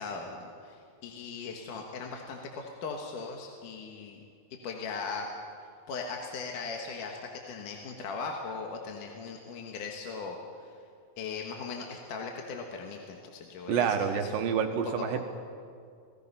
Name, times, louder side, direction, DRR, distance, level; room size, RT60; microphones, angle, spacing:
voice 1, 0.0-4.2 4.6-5.3 5.9-10.7 11.2-14.4 14.8-15.2, left 4 dB, 65° left, 1 dB, 2.8 m, -39 dB
voice 2, 13.7-15.2, right 7 dB, 75° right, 6 dB, 2.7 m, -28 dB
27.5 x 18.5 x 5.5 m, 2.3 s
omnidirectional pair, 4.3 m